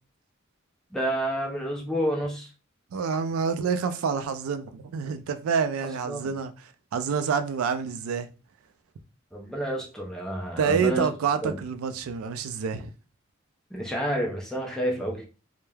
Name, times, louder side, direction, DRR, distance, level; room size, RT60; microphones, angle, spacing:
voice 1, 0.9-2.5 5.8-6.3 9.3-11.1 11.4-11.5 13.7-15.3, equal, 5° left, 0.4 m, -29 dB
voice 2, 2.9-6.5 6.9-8.3 10.6-12.9, right 6 dB, 85° right, 0.4 m, -27 dB
3.1 x 2.1 x 2.2 m
head